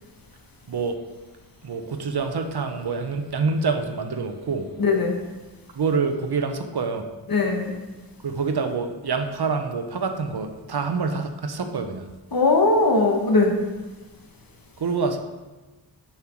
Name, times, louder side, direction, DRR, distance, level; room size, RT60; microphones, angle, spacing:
voice 1, 1.6-4.7 5.7-7.0 8.2-12.0 14.8-15.2, right 4 dB, 70° right, 7 dB, 0.8 m, -26 dB
voice 2, 4.8-5.2 7.3-7.7 12.3-13.5, left 3 dB, 60° left, 2 dB, 1.4 m, -19 dB
7.3 x 5.6 x 4.5 m, 1.2 s
wide cardioid pair, 70°, 41 cm